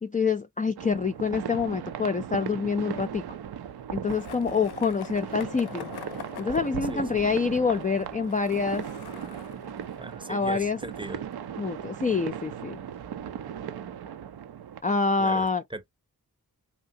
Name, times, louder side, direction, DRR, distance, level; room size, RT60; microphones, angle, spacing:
voice 1, 0.0-3.2 3.9-5.9 6.4-8.9 10.3-10.8 11.6-12.8 14.8-15.6, left 5 dB, 20° left, 0.3 m, -26 dB
sound 1, 0.8-14.8, right 9 dB, 80° right, 0.5 m, -37 dB
Skateboard, 4.1-12.0, left 9 dB, 80° left, 0.5 m, -45 dB
voice 2, 6.9-7.2 10.0-11.2 15.2-15.9, right 2 dB, 15° right, 0.6 m, -39 dB
2.8 x 2.7 x 2.6 m
cardioid pair, 45°, 38 cm